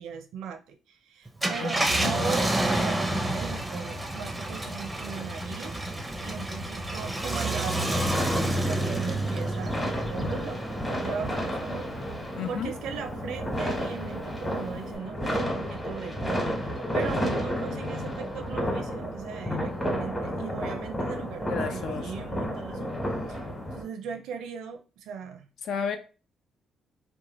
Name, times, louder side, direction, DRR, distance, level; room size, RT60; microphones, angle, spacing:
voice 1, 0.0-5.8 6.2-10.6 10.9-22.9 23.3-25.5, right 6 dB, 85° right, 0.5 m, -38 dB
Car, 1.3-12.1 12.6-12.7 14.7-15.0, right 1 dB, 10° right, 0.5 m, -29 dB
voice 2, 1.6-2.1 12.4-12.7 21.5-22.3 25.6-26.0, left 6 dB, 70° left, 0.4 m, -33 dB
sound 1, 7.7-23.8, equal, 15° left, 1.0 m, -32 dB
2.9 x 2.2 x 2.9 m
cardioid pair, 90°, 0 cm